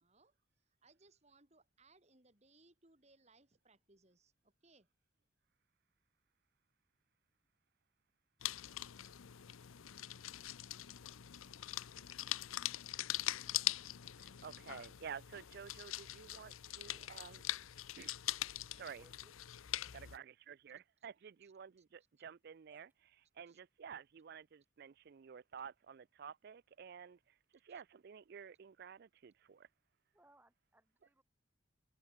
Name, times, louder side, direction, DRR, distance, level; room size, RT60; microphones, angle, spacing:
voice 1, 0.0-4.9 21.4-21.5 23.5-23.6, right 3 dB, 30° right, 3.4 m, -69 dB
sound 1, 8.4-20.2, left 14 dB, 80° left, 0.6 m, -42 dB
voice 2, 14.2-17.5 18.0-18.2 18.8-19.0 19.9-22.9 23.4-27.4 27.6-29.7, right 7 dB, 50° right, 0.4 m, -52 dB
voice 3, 19.0-19.3 22.7-22.8 30.1-31.2, right 1 dB, 10° right, 2.3 m, -68 dB
head